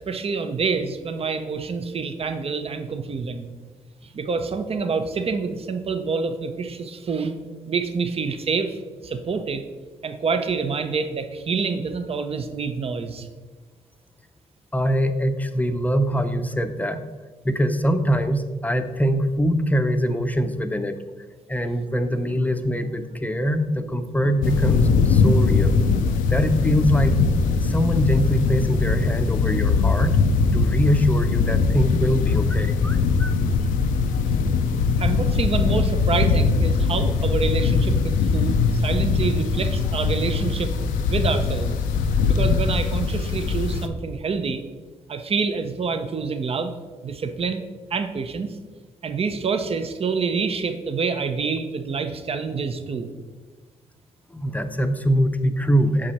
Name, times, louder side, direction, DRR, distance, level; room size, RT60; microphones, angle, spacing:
voice 1, 0.0-3.5 4.0-7.3 7.7-8.8 9.0-9.6 10.0-13.3 35.0-41.8 42.3-44.6 45.1-46.7 47.0-47.6 47.9-48.6 49.0-53.1, right 5 dB, 45° right, 8 dB, 0.7 m, -27 dB
voice 2, 14.7-17.0 17.4-20.9 21.5-25.8 26.3-27.2 27.6-30.2 30.5-33.3 54.3-56.1, equal, 10° left, 8 dB, 0.6 m, -23 dB
sound 1, 24.4-43.9, left 4 dB, 90° left, 0.5 m, -21 dB
6.0 x 5.0 x 4.2 m, 1.3 s
supercardioid pair, 60°, 14 cm